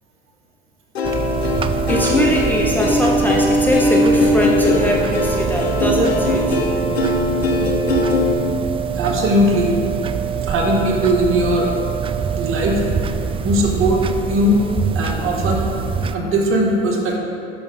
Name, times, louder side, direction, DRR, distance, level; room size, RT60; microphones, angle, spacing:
Plucked string instrument, 0.9-8.3, left 2 dB, 90° left, 1.0 m, -20 dB
sound 1, 1.0-16.2, right 7 dB, 20° right, 0.4 m, -24 dB
voice 1, 1.9-6.6, equal, 5° left, -2 dB, 0.8 m, -21 dB
voice 2, 9.0-9.8 10.4-11.7 12.4-12.8 13.4-14.6 15.0-15.7 16.1-17.2, equal, 45° right, 0 dB, 1.8 m, -19 dB
11.0 x 6.1 x 3.5 m, 2.5 s
hypercardioid pair, 80°, 30 cm